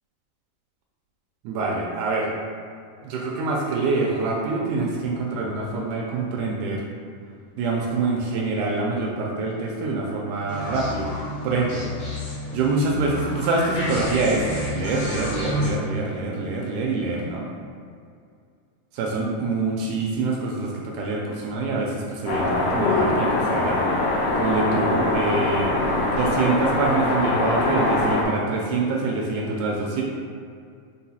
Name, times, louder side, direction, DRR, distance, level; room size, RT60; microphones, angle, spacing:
voice 1, 1.4-2.3 3.0-6.9 7.6-11.2 11.4-11.8 12.5-14.5 14.7-17.5 18.9-23.9 24.4-30.0, right 3 dB, 80° right, -1 dB, 1.9 m, -25 dB
sound 1, 10.5-15.7, left 1 dB, 65° left, 1.7 m, -30 dB
sound 2, 22.3-28.2, left 2 dB, 90° left, 2.3 m, -23 dB
5.4 x 2.1 x 4.1 m, 2.2 s
omnidirectional pair, 3.8 m